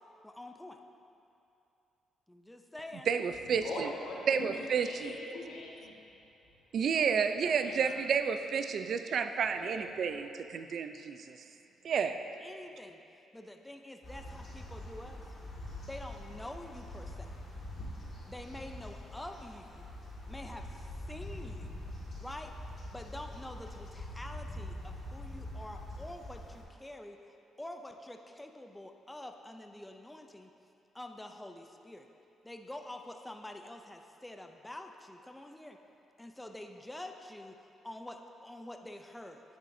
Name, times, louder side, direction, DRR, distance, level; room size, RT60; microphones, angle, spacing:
voice 1, 0.2-0.8 2.3-3.1 12.4-13.0 13.3-15.3 15.8-17.5 18.3-19.9 20.3-21.9 22.2-22.6 22.9-27.2 27.6-30.5 30.9-32.1 32.4-35.8 36.2-37.6 37.8-39.4, left 1 dB, 10° left, 4 dB, 0.4 m, -46 dB
voice 2, 3.1-3.9 4.3-5.1 6.7-11.4 11.8-12.2, right 6 dB, 60° right, 9 dB, 0.3 m, -31 dB
voice 3, 3.6-6.0 7.3-7.9 9.4-9.8, left 2 dB, 85° left, -3 dB, 1.1 m, -43 dB
sound 1, 14.0-26.6, left 1 dB, 40° left, 1.7 m, -44 dB
8.3 x 7.0 x 2.6 m, 2.8 s
cardioid pair, 90°, 0 cm